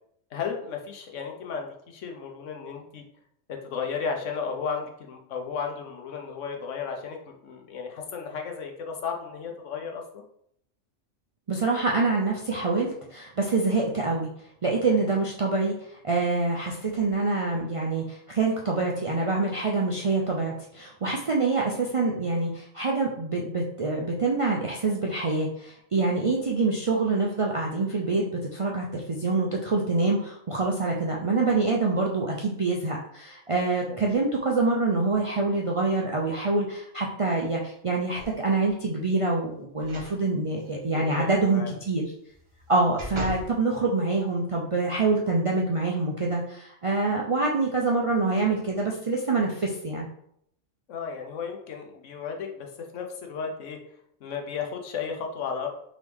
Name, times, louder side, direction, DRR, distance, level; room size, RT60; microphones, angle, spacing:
voice 1, 0.3-3.0 3.5-10.2 14.9-15.1 33.9-34.1 40.9-41.7 50.9-53.8 54.2-55.7, left 6 dB, 80° left, 3 dB, 1.1 m, -34 dB
voice 2, 11.5-14.3 14.6-42.1 42.7-50.1, right 3 dB, 50° right, -2 dB, 0.3 m, -26 dB
sound 1, 38.1-38.7 39.8-40.2 40.6-40.7 42.3-43.5 44.1-44.2, equal, 25° right, 0.9 m, -38 dB
3.9 x 3.1 x 3.3 m, 0.69 s
omnidirectional pair, 1.3 m